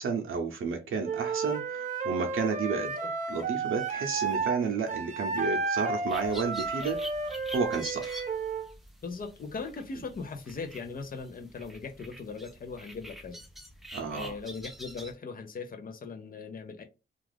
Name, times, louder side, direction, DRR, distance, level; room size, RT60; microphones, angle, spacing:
voice 1, 0.0-2.9 3.3-7.0 7.5-8.2 13.9-14.3, right 5 dB, 90° right, 0.6 m, -31 dB
Wind instrument woodwind instrument, 1.0-4.6 4.9-8.7, right 4 dB, 35° right, 0.7 m, -32 dB
sound 1, 6.1-15.1, equal, ahead, 0.5 m, -46 dB
voice 2, 9.0-13.4 14.1-16.8, left 4 dB, 45° left, 0.5 m, -39 dB
2.4 x 2.4 x 3.2 m
wide cardioid pair, 155°, 20 cm